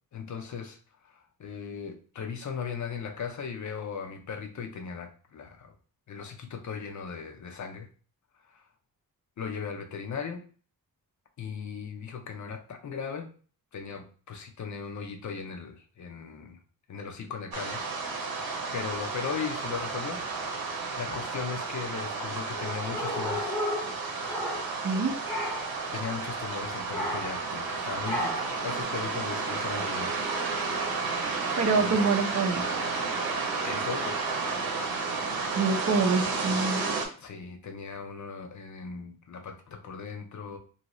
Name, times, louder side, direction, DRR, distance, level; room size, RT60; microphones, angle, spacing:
voice 1, 0.1-0.8 1.0-5.7 6.1-7.9 8.5-8.6 9.4-10.4 11.4-13.3 13.7-16.6 16.9-17.8 18.7-20.2 20.9-23.6 25.9-30.2 31.8-32.0 33.0-33.4 33.6-34.3 37.2-40.6, left 6 dB, 55° left, 4 dB, 0.6 m, -37 dB
sound 1, 17.5-37.1, right 4 dB, 80° right, 0.9 m, -32 dB
sound 2, 22.5-25.0 25.2-25.8 26.9-27.5 28.0-28.6, equal, ahead, 0.7 m, -33 dB
voice 2, 24.8-25.2 31.6-32.6 35.5-36.8, right 4 dB, 50° right, 5 dB, 0.5 m, -25 dB
2.8 x 2.7 x 3.0 m, 0.41 s
wide cardioid pair, 145°, 35 cm